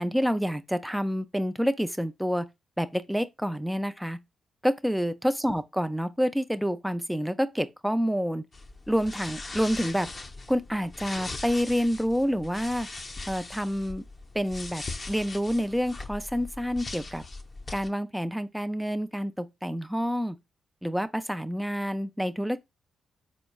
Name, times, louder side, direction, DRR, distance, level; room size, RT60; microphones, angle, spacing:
voice 1, 0.0-2.4 2.8-4.2 4.6-8.4 8.9-10.1 10.5-12.9 13.3-14.0 14.3-17.2 17.7-20.4 20.8-22.6, equal, 5° right, 0.4 m, -28 dB
sound 1, 8.5-17.9, left 3 dB, 40° left, 0.6 m, -40 dB
4.3 x 3.0 x 2.3 m
supercardioid pair, 45°, 0 cm